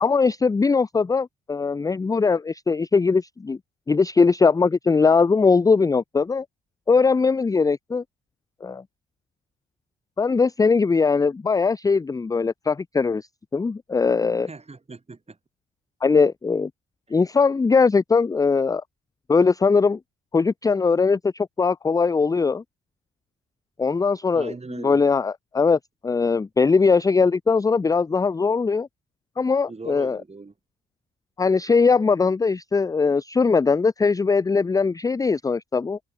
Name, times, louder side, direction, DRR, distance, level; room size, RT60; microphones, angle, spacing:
voice 1, 0.0-3.6 3.9-6.5 6.9-8.0 8.6-8.8 10.2-13.3 13.5-14.5 16.0-16.7 17.1-18.8 19.3-20.0 20.3-22.6 23.8-24.5 24.8-28.9 29.4-30.2 31.4-36.0, left 4 dB, 10° left, 0.3 m, -20 dB
voice 2, 14.4-15.4 17.1-17.2 24.3-25.1 29.7-30.5, right 3 dB, 20° right, 1.7 m, -39 dB
cardioid pair, 90°, 30 cm